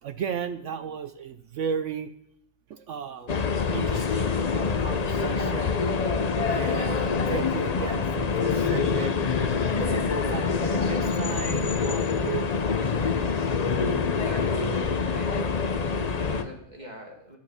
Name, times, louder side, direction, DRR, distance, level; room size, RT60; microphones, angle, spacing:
voice 1, 0.0-2.1 2.7-3.4 3.7-5.8 6.5-9.2 9.8-13.4 13.7-13.8 15.8-16.0, right 7 dB, 65° right, 11 dB, 0.7 m, -35 dB
sound 1, 3.3-16.4, left 5 dB, 80° left, 0.3 m, -25 dB
voice 2, 14.1-15.6 16.2-17.4, equal, 25° right, 1 dB, 2.1 m, -43 dB
11.5 x 9.3 x 5.7 m, 0.74 s
omnidirectional pair, 1.8 m